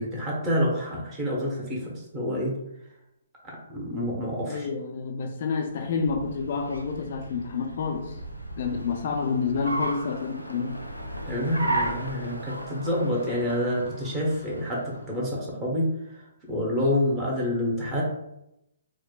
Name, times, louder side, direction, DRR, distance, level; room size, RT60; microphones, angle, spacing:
voice 1, 0.0-2.5 3.4-4.7 11.3-18.0, left 1 dB, 20° right, -4 dB, 1.0 m, -28 dB
voice 2, 4.5-8.2 8.6-10.8, left 5 dB, 45° left, 3 dB, 0.3 m, -29 dB
Car, 5.7-15.2, right 1 dB, 85° right, 0.5 m, -35 dB
4.6 x 2.1 x 2.4 m, 0.85 s
figure-of-eight pair, 125°, 0 cm